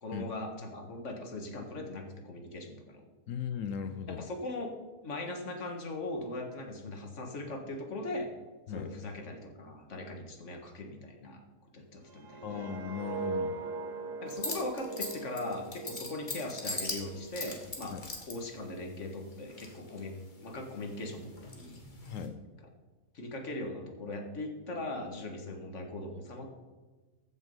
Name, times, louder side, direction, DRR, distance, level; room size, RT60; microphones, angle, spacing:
voice 1, 0.0-3.0 4.1-4.7 5.0-8.3 8.7-11.4 11.7-12.7 14.2-18.0 18.3-20.1 20.4-22.1 23.1-26.5, left 2 dB, 50° left, 3 dB, 1.8 m, -40 dB
voice 2, 3.3-4.3 8.7-8.9 12.4-13.6 17.9-18.0 22.0-22.4, left 7 dB, 65° left, 10 dB, 0.9 m, -37 dB
sound 1, 12.1-17.1 17.5-17.8, right 3 dB, 80° right, 1.6 m, -40 dB
sound 2, 14.3-18.3 19.3-20.1 20.5-22.3, left 2 dB, 30° left, 1.7 m, -40 dB
14.5 x 6.3 x 5.4 m, 1.3 s
omnidirectional pair, 1.7 m